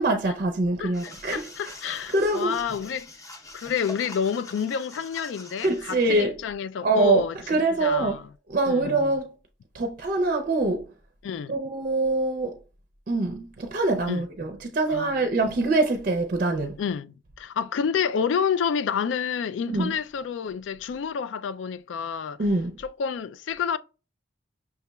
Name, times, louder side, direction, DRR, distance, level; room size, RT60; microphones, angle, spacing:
voice 1, 0.0-1.5 1.8-2.6 5.6-6.4 6.8-8.2 8.5-9.4 9.7-10.9 11.5-12.6 13.1-16.8 19.7-20.0 22.4-22.8, right 2 dB, 50° right, 0.5 m, -24 dB
voice 2, 0.8-3.1 3.5-8.2 8.7-9.0 11.2-11.6 14.1-14.3 14.9-15.1 16.8-22.4 22.8-23.8, left 7 dB, 90° left, 0.3 m, -29 dB
sound 1, 0.9-6.2, left 2 dB, 20° left, 0.7 m, -45 dB
5.7 x 3.0 x 2.2 m
head